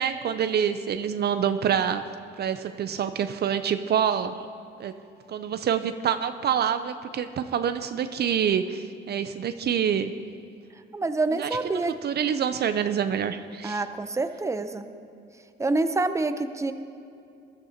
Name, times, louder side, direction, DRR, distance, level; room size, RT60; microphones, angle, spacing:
voice 1, 0.0-2.1 2.4-4.4 4.8-4.9 5.3-10.1 11.4-11.5 12.0-13.8, right 8 dB, 55° right, 10 dB, 0.5 m, -26 dB
voice 2, 10.9-11.9 13.6-14.9 15.6-16.7, right 3 dB, 15° right, 9 dB, 0.7 m, -27 dB
21.0 x 12.5 x 2.9 m, 2.5 s
cardioid pair, 90°, 20 cm